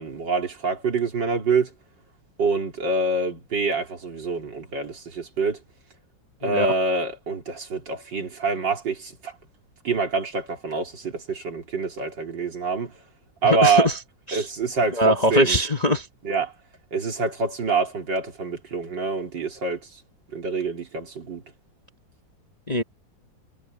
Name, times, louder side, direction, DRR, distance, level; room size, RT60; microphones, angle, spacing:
voice 1, 0.0-1.7 2.4-5.6 6.4-9.3 9.8-12.9 13.4-13.9 14.3-15.6 16.2-16.5 16.9-19.8 20.3-21.4, right 4 dB, 75° right, 3.9 m, -26 dB
voice 2, 13.4-14.0 14.3-14.5 14.9-16.1 22.7-22.8, left 1 dB, 25° left, 0.9 m, -22 dB
omnidirectional pair, 2.0 m